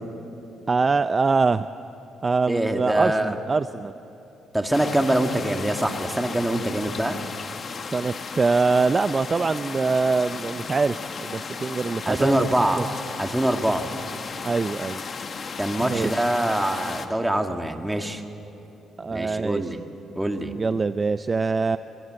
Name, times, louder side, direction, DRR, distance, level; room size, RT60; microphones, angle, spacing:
voice 1, 0.7-1.7 2.2-3.9 7.9-12.5 12.8-12.9 14.4-15.0 15.8-16.2 19.0-19.6 20.6-21.8, right 4 dB, 30° right, 12 dB, 0.5 m, -23 dB
voice 2, 2.5-3.4 4.5-7.2 12.1-12.8 13.2-13.9 15.6-18.2 19.1-19.8 20.2-20.6, right 1 dB, 10° right, 4 dB, 2.0 m, -24 dB
sound 1, 4.7-17.1, left 5 dB, 45° left, 1.6 m, -35 dB
25.5 x 23.0 x 7.7 m, 2.9 s
cardioid pair, 90°, 0 cm